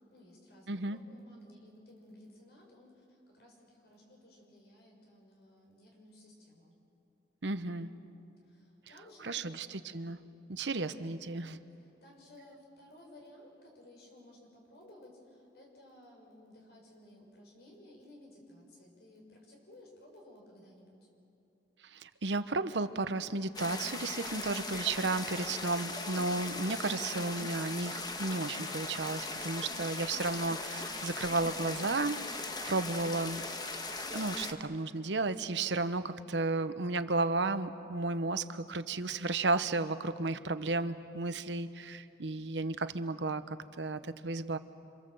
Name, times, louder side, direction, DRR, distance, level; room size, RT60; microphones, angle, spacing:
voice 1, 0.1-6.7 8.4-9.6 10.7-10.9 11.8-21.1, left 1 dB, 65° left, 0 dB, 6.4 m, -57 dB
voice 2, 0.7-1.0 7.4-7.9 9.2-10.2 10.5-11.6 21.8-33.4 34.1-44.6, right 3 dB, 85° right, 11 dB, 1.0 m, -33 dB
sound 1, 23.5-34.5, left 3 dB, 20° left, 1.3 m, -39 dB
27.0 x 27.0 x 7.8 m, 2.8 s
head